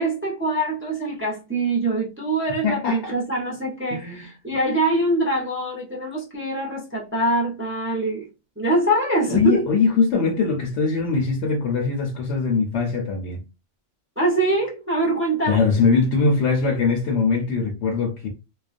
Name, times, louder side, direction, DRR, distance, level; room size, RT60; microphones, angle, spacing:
voice 1, 0.0-8.3 8.6-9.6 14.2-15.6, right 2 dB, 15° right, 0.5 m, -24 dB
voice 2, 2.6-3.1 3.9-4.3 9.3-13.4 15.4-18.3, left 4 dB, 70° left, 0.9 m, -21 dB
2.4 x 2.1 x 2.4 m
omnidirectional pair, 1.3 m